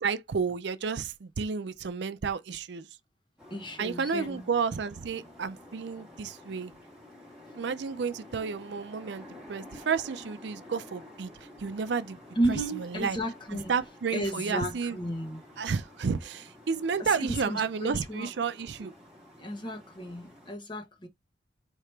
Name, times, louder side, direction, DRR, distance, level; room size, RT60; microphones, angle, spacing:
voice 1, 0.0-2.9 3.8-6.7 7.5-12.2 12.5-13.2 13.7-15.0 15.6-18.9, right 5 dB, 65° right, 0.5 m, -31 dB
sound 1, 3.4-20.6, left 1 dB, 5° right, 1.5 m, -51 dB
voice 2, 3.5-4.5 12.3-13.7 14.1-15.4 17.0-18.3 19.4-21.1, right 1 dB, 25° left, 1.0 m, -33 dB
4.6 x 2.8 x 3.3 m
head